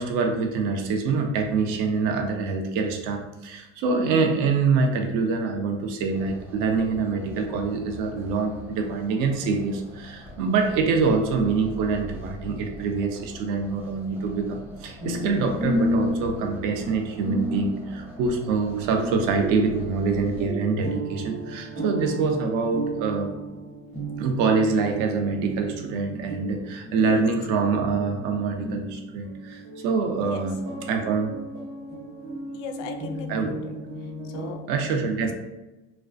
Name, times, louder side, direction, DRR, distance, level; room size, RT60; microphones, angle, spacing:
voice 1, 0.0-23.3 24.2-31.3 33.3-33.6 34.7-35.3, right 4 dB, 55° right, 4 dB, 0.5 m, -25 dB
sound 1, 6.1-20.5, left 1 dB, 5° right, 0.3 m, -43 dB
sound 2, 15.0-34.5, right 1 dB, 75° right, 1.1 m, -33 dB
voice 2, 32.5-33.7 34.0-34.6, left 6 dB, 80° left, 6 dB, 0.5 m, -38 dB
2.3 x 2.2 x 2.4 m, 1.0 s
supercardioid pair, 100°, 37 cm